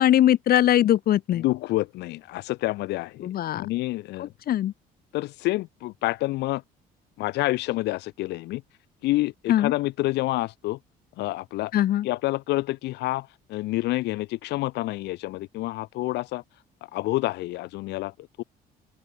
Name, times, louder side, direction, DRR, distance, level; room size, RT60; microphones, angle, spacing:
voice 1, 0.0-1.4 3.2-3.7 4.2-4.7 9.5-9.7 11.7-12.1, left 12 dB, 60° left, 3.2 m, -21 dB
voice 2, 1.3-4.3 5.1-6.6 7.2-8.6 9.0-10.8 11.2-11.7 12.0-16.4 16.9-18.4, left 18 dB, 85° left, 5.7 m, -28 dB
open air
cardioid pair, 110°, 17 cm